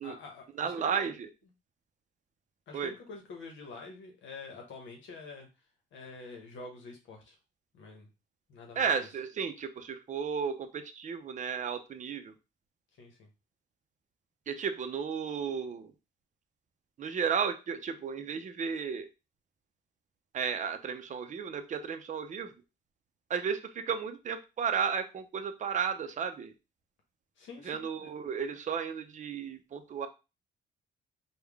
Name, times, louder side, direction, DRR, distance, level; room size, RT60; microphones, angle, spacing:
voice 1, 0.0-0.9 2.7-5.5 5.9-7.4 7.7-8.1 8.5-8.9 13.0-13.3 27.4-28.1, left 4 dB, 75° left, 2 dB, 0.9 m, -47 dB
voice 2, 0.6-1.3 2.7-2.9 8.8-12.3 14.5-15.9 17.0-19.1 20.3-22.5 23.3-26.5 27.6-30.1, right 6 dB, 40° right, 8 dB, 0.5 m, -33 dB
3.5 x 2.2 x 3.4 m, 0.28 s
cardioid pair, 90°, 20 cm